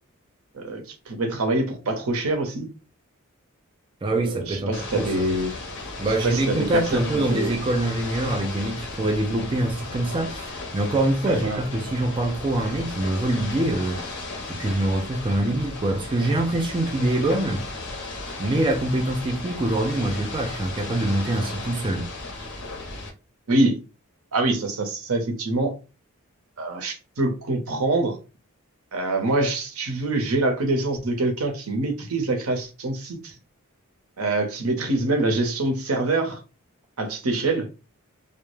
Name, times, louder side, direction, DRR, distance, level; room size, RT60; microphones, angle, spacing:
voice 1, 0.5-2.7 4.1-5.5 6.2-7.5 11.3-11.6 23.5-23.8 24.3-25.7 26.6-28.2 28.9-33.3 34.2-36.4 37.0-37.7, right 2 dB, 85° right, 0.7 m, -25 dB
voice 2, 4.0-5.3 6.0-14.0 14.5-17.6 18.4-22.1, right 1 dB, 25° right, 0.3 m, -24 dB
Ocean / Boat Water vehicle, 4.7-23.1, left 2 dB, 55° left, 0.7 m, -35 dB
2.2 x 2.1 x 3.0 m
head